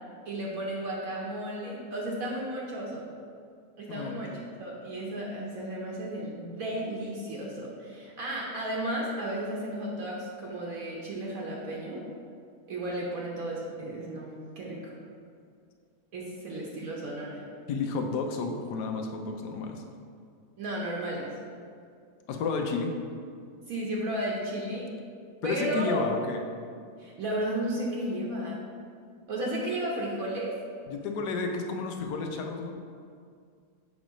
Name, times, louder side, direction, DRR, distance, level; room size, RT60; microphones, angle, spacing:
voice 1, 0.2-3.0 3.8-4.3 4.6-12.0 12.7-14.3 14.6-14.9 16.1-17.4 20.6-21.3 23.7-24.9 25.4-26.0 27.0-28.6 29.3-30.5, right 1 dB, 65° right, -4 dB, 1.1 m, -33 dB
voice 2, 17.7-19.8 22.3-22.9 25.4-26.4 30.9-32.8, left 4 dB, 90° left, 4 dB, 1.2 m, -31 dB
6.3 x 3.0 x 5.0 m, 2.2 s
omnidirectional pair, 1.7 m